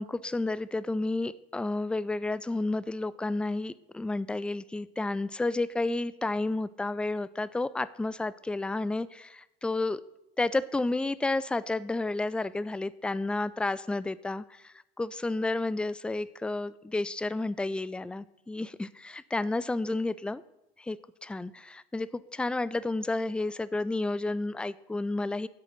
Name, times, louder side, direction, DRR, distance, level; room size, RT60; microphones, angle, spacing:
voice 1, 0.0-10.0 10.4-20.4 20.8-25.5, left 2 dB, 5° left, 18 dB, 0.3 m, -31 dB
10.5 x 8.0 x 5.9 m, 0.90 s
figure-of-eight pair, 65°, 30 cm